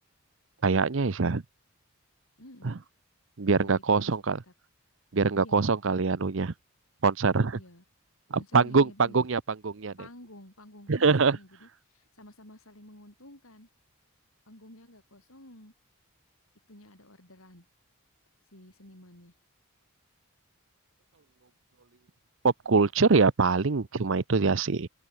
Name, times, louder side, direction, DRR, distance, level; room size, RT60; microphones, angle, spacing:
voice 1, 0.6-1.4 2.6-2.7 3.4-4.4 5.1-6.5 7.0-7.6 8.3-9.9 10.9-11.4 22.4-24.9, right 4 dB, 60° right, 0.7 m, -24 dB
voice 2, 2.4-2.8 3.5-4.1 4.4-4.5 5.3-5.7 7.5-7.8 8.3-9.2 10.0-13.7 14.5-15.7 16.7-17.7 18.5-19.3, left 1 dB, 75° left, 7.4 m, -51 dB
open air
head